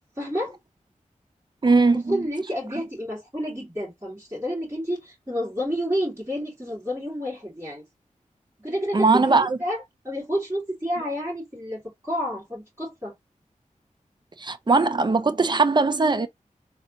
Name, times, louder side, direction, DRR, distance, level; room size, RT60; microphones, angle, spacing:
voice 1, 0.2-0.6 2.1-7.8 8.6-13.1, equal, 20° right, 2.6 m, -30 dB
voice 2, 1.6-2.2 8.9-9.6 14.4-16.3, right 3 dB, 35° right, 0.6 m, -20 dB
4.0 x 2.6 x 2.9 m
wide cardioid pair, 70°, 13 cm